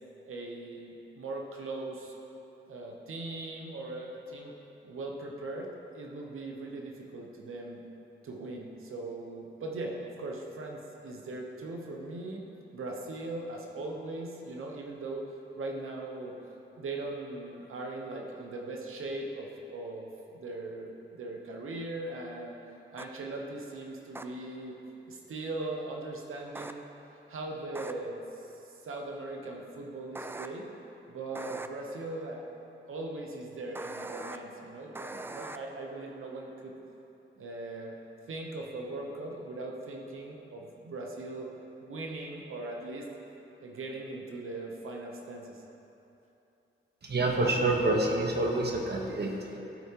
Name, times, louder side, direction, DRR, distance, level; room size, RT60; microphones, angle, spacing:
voice 1, 0.3-2.1 2.7-4.5 4.8-5.7 5.9-7.8 8.2-12.4 12.7-16.3 16.8-20.1 20.3-22.6 22.9-24.8 25.1-26.9 27.3-30.7 31.1-32.5 32.9-36.7 37.4-37.9 38.3-41.5 41.8-43.1 43.6-45.6, right 2 dB, 85° right, 0 dB, 0.8 m, -39 dB
sound 1, 23.0-23.1 24.1-24.2 26.5-26.7 27.7-27.9 30.1-30.5 31.3-31.7 33.7-34.4 34.9-35.6, right 2 dB, 10° right, 0.3 m, -40 dB
voice 2, 47.0-49.6, right 2 dB, 55° right, 0 dB, 1.1 m, -27 dB
13.0 x 4.6 x 2.9 m, 3.0 s
cardioid pair, 60°, 21 cm